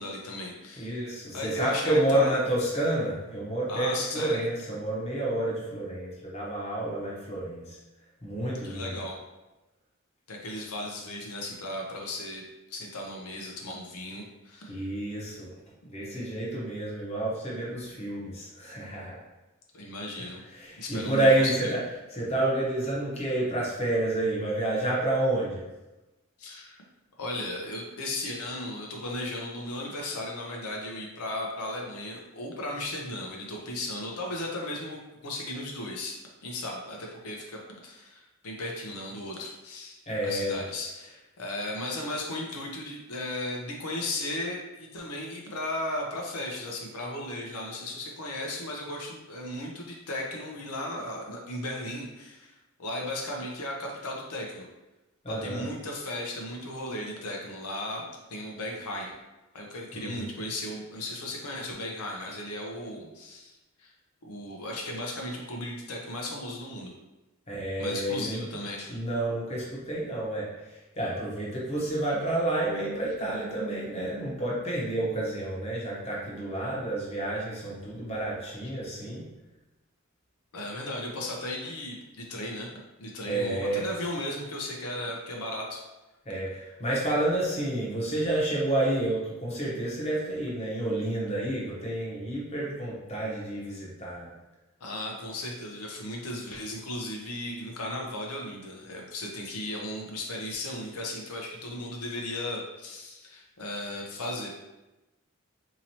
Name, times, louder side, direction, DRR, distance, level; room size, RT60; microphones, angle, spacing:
voice 1, 0.0-1.0 1.3-2.4 3.7-4.4 8.6-9.1 10.3-12.4 12.7-14.9 19.7-20.4 20.8-21.3 26.4-26.8 27.2-36.2 36.4-40.0 40.2-54.7 55.3-59.1 59.5-63.5 63.8-63.9 64.2-66.9 67.8-69.0 80.5-82.7 83.0-85.8 94.8-104.6, left 1 dB, 90° left, 0 dB, 0.7 m, -36 dB
voice 2, 0.8-7.8 8.2-9.0 14.7-15.5 15.8-19.2 20.2-25.7 40.1-40.6 55.2-55.7 59.9-60.3 63.0-63.1 67.5-68.6 68.9-79.2 83.3-83.9 86.2-94.3, right 1 dB, 30° left, -5 dB, 0.9 m, -29 dB
4.1 x 2.8 x 2.9 m, 1.0 s
head